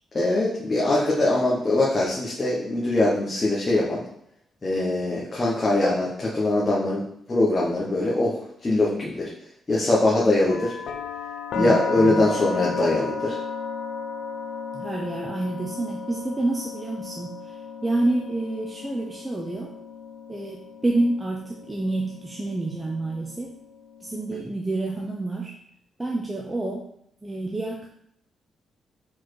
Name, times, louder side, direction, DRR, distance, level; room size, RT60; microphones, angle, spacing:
voice 1, 0.1-4.0 4.6-7.0 7.3-9.3 9.7-10.8 11.5-13.4, left 2 dB, 25° left, -6 dB, 1.0 m, -22 dB
sound 1, 10.5-24.4, left 5 dB, 75° left, 0.6 m, -35 dB
voice 2, 11.5-12.3 14.7-17.3 17.8-19.7 20.3-23.5 24.0-25.5 26.0-26.8 27.2-27.9, right 2 dB, 10° right, -1 dB, 0.6 m, -28 dB
4.8 x 4.2 x 4.7 m, 0.72 s
wide cardioid pair, 155°, 0 cm